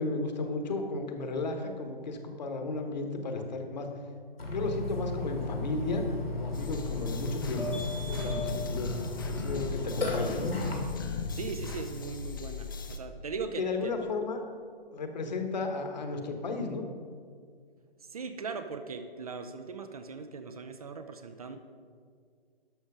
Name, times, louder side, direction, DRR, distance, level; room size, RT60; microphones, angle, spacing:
voice 1, 0.0-3.9 4.4-6.0 6.3-8.9 9.2-10.6 13.6-14.4 14.9-16.8, left 3 dB, 45° left, 5 dB, 1.3 m, -34 dB
Burping eructation, 4.4-10.8, left 2 dB, 75° left, 2.3 m, -35 dB
sound 1, 6.5-13.0, left 5 dB, 20° left, 0.4 m, -38 dB
voice 2, 11.3-14.1 18.1-21.6, right 5 dB, 40° right, 8 dB, 0.6 m, -39 dB
12.0 x 6.2 x 5.1 m, 2.1 s
figure-of-eight pair, 135°, 30 cm